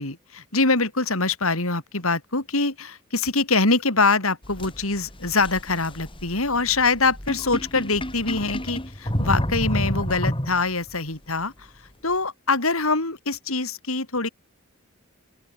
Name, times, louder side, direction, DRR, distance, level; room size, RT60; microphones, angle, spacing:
voice 1, 0.0-11.7 12.0-14.3, left 3 dB, 85° left, 5.8 m, -24 dB
sound 1, 4.4-10.9, equal, 25° left, 7.4 m, -30 dB
open air
head